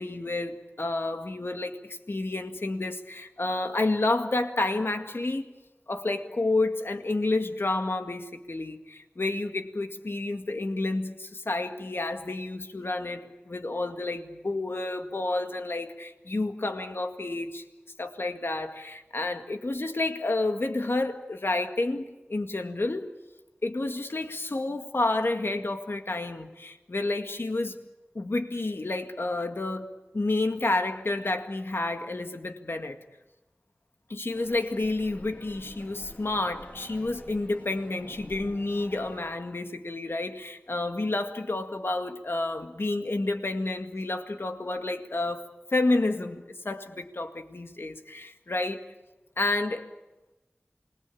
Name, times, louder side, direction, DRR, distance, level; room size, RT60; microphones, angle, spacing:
voice 1, 0.0-5.5 5.9-17.6 18.0-23.1 23.6-27.8 28.1-29.9 30.1-33.0 34.1-48.8 49.4-49.9, left 2 dB, 70° left, 6 dB, 2.0 m, -30 dB
sound 1, 34.3-39.3, left 1 dB, 35° left, 3.4 m, -48 dB
28.0 x 21.0 x 8.5 m, 1.1 s
wide cardioid pair, 45°, 4 cm